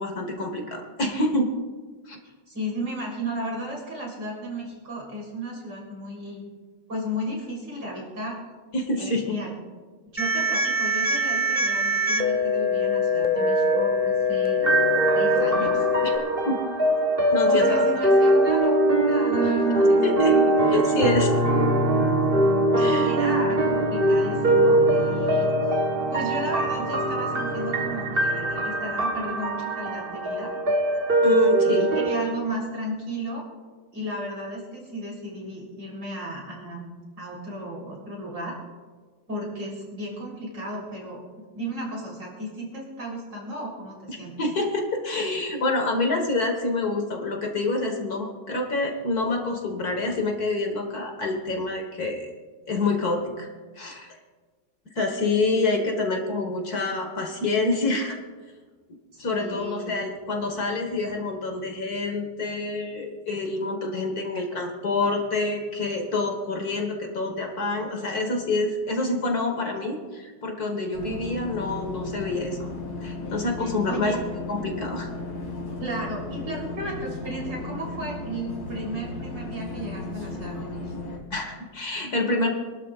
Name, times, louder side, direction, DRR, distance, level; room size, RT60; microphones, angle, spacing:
voice 1, 0.0-1.5 2.1-2.2 8.7-9.2 16.0-16.1 16.5-16.6 17.3-17.8 20.0-20.3 20.7-21.3 22.6-23.1 31.2-31.9 44.1-52.3 52.7-53.5 53.8-54.2 55.0-58.2 59.2-72.6 73.0-74.2 74.5-75.1 81.3-82.5, left 2 dB, 55° left, 3 dB, 2.0 m, -27 dB
voice 2, 2.5-6.4 6.9-8.4 8.9-9.5 10.1-14.7 15.1-15.9 17.5-20.6 23.0-25.5 26.1-30.5 31.3-33.5 33.9-38.6 39.3-41.2 41.5-44.3 59.1-59.9 73.6-74.2 75.8-80.8, right 1 dB, 75° right, -3 dB, 4.4 m, -34 dB
sound 1, 10.2-16.2, left 1 dB, 5° left, 0.8 m, -23 dB
sound 2, 14.6-32.2, right 1 dB, 35° right, 1.4 m, -22 dB
sound 3, 70.9-81.2, left 2 dB, 85° left, 3.2 m, -35 dB
26.0 x 12.0 x 2.5 m, 1.4 s
omnidirectional pair, 1.9 m